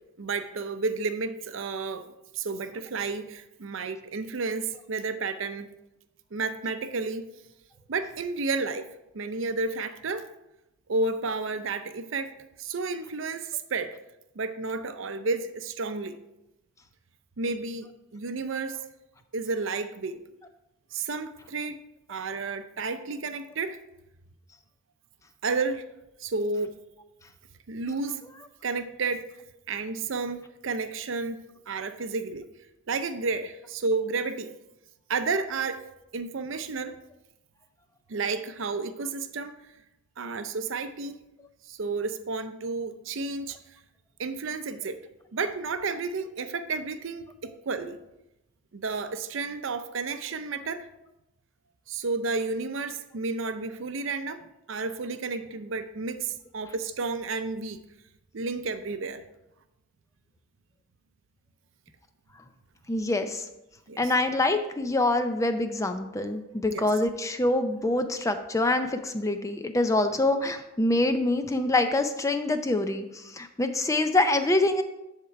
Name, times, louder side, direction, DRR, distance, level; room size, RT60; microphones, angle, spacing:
voice 1, 0.2-2.1 2.3-5.7 6.3-7.3 7.9-8.9 9.1-10.3 10.9-12.3 12.6-13.9 14.4-16.2 17.4-18.8 19.3-20.2 20.9-21.8 22.1-23.8 25.4-25.8 26.2-26.8 27.7-28.2 28.6-29.2 29.7-32.5 32.9-34.5 35.1-35.8 36.1-36.9 38.1-39.5 40.2-41.2 41.7-43.6 44.2-45.0 45.3-48.0 48.7-50.9 51.9-54.4 54.7-57.8 58.3-59.2 63.9-64.1 66.7-66.8, right 4 dB, 60° right, 10 dB, 0.5 m, -31 dB
voice 2, 62.9-63.5 64.0-74.8, left 2 dB, 15° left, 8 dB, 0.4 m, -25 dB
10.0 x 3.7 x 4.5 m, 0.93 s
head